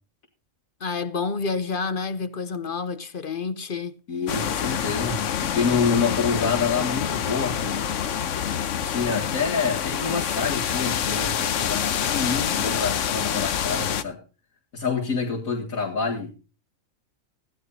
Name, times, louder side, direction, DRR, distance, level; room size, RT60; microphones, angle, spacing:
voice 1, 0.8-3.9, left 4 dB, 45° left, 0.9 m, -29 dB
voice 2, 4.1-7.9 8.7-14.2 14.7-16.3, left 5 dB, 90° left, 2.4 m, -27 dB
sound 1, 4.3-14.0, left 8 dB, 65° left, 1.1 m, -27 dB
15.5 x 11.0 x 4.2 m
omnidirectional pair, 1.4 m